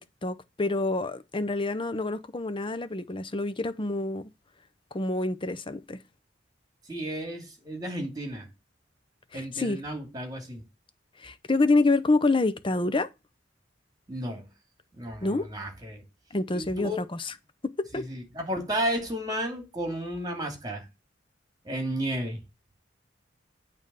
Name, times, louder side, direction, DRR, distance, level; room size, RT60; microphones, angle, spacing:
voice 1, 0.2-4.3 4.9-6.0 9.3-9.8 11.2-13.1 15.2-15.5 16.3-17.3 17.6-18.1, left 2 dB, 25° left, 0.7 m, -27 dB
voice 2, 6.9-8.5 9.3-10.6 14.1-14.5 15.0-16.0 16.5-17.0 17.9-20.8 21.6-22.4, equal, 20° right, 2.5 m, -33 dB
8.8 x 3.5 x 6.7 m
head